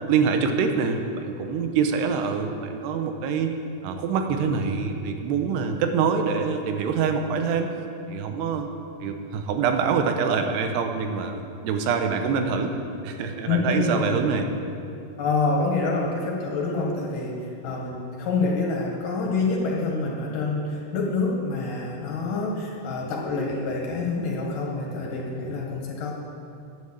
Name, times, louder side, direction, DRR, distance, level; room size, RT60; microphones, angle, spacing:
voice 1, 0.1-3.5 3.8-7.7 8.1-8.7 9.0-12.7 13.0-14.5, right 6 dB, 90° right, 5 dB, 3.0 m, -25 dB
voice 2, 13.5-14.1 15.2-26.1, left 3 dB, 60° left, -1 dB, 3.0 m, -27 dB
11.5 x 9.1 x 8.2 m, 2.6 s
omnidirectional pair, 4.7 m